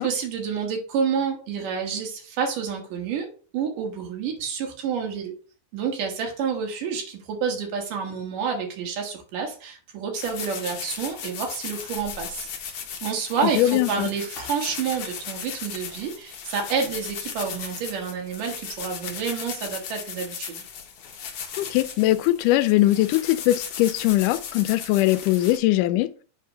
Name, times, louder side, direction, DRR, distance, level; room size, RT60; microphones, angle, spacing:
voice 1, 0.0-3.3 3.5-5.3 5.7-20.6, right 6 dB, 80° right, 3.0 m, -29 dB
sound 1, 10.1-25.6, left 7 dB, 60° left, 1.6 m, -37 dB
voice 2, 13.6-14.1 21.6-26.2, left 15 dB, 85° left, 2.1 m, -21 dB
7.7 x 3.7 x 5.5 m
omnidirectional pair, 3.7 m